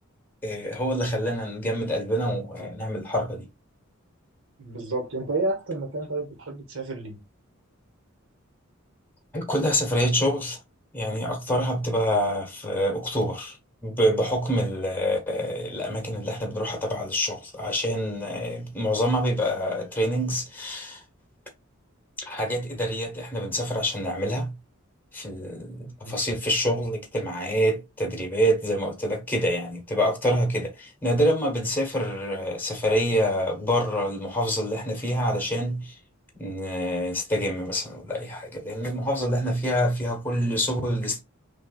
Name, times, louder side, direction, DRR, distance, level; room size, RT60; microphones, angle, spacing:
voice 1, 0.4-3.5 9.3-10.6 10.9-13.6 13.8-21.0 22.2-24.6 25.1-35.9 36.4-41.2, equal, 10° left, 1.1 m, -26 dB
voice 2, 4.6-7.2 25.9-26.2, right 2 dB, 65° right, 1.5 m, -31 dB
5.6 x 2.7 x 2.4 m
head